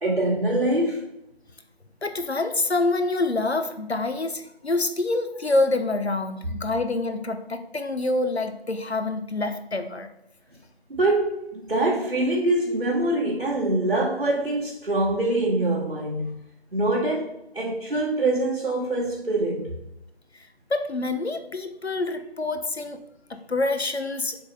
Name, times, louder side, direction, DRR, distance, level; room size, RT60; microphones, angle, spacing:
voice 1, 0.0-1.0 10.9-16.4 16.7-19.8, right 2 dB, 65° right, -4 dB, 1.2 m, -24 dB
voice 2, 2.0-10.1 20.7-23.0 23.3-24.4, left 2 dB, 75° left, 7 dB, 0.9 m, -26 dB
6.8 x 3.8 x 4.1 m, 0.86 s
figure-of-eight pair, 170°, 33 cm